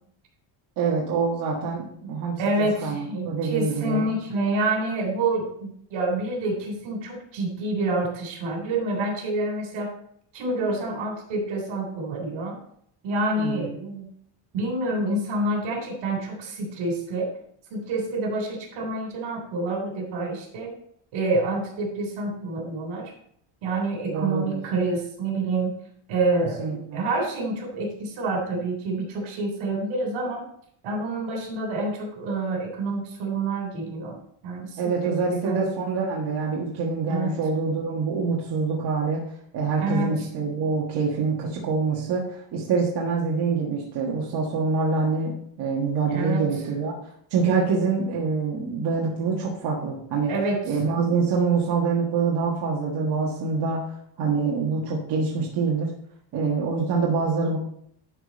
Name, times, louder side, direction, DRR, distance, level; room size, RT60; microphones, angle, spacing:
voice 1, 0.8-4.1 13.4-13.7 24.1-24.6 26.6-27.0 34.8-39.2 39.5-46.9 47.3-50.3 50.6-53.8 54.2-55.9 56.3-57.6, right 4 dB, 55° right, -3 dB, 1.6 m, -25 dB
voice 2, 2.4-9.9 10.3-12.6 13.0-14.1 14.5-17.3 17.7-20.7 21.1-23.1 23.6-25.7 26.1-30.5 30.8-34.2 34.4-35.6 37.1-37.4 39.8-40.1 46.1-46.5 50.3-50.6, right 2 dB, 80° right, 1 dB, 3.5 m, -27 dB
11.0 x 5.1 x 4.2 m, 0.67 s
cardioid pair, 155°, 47 cm